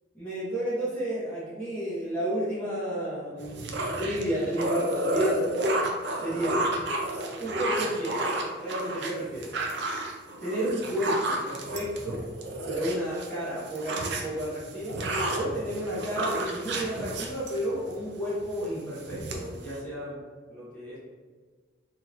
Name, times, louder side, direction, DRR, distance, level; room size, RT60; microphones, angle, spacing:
voice 1, 0.1-5.4 6.2-6.6 7.4-8.2 8.5-9.5 10.4-12.2 12.6-15.0 15.3-20.2 20.5-21.0, equal, 5° left, -12 dB, 1.1 m, -32 dB
sound 1, 3.4-13.3 13.6-18.0 18.4-18.7 19.0-19.8, right 1 dB, 60° right, 0.5 m, -31 dB
3.9 x 2.9 x 2.4 m, 1.5 s
head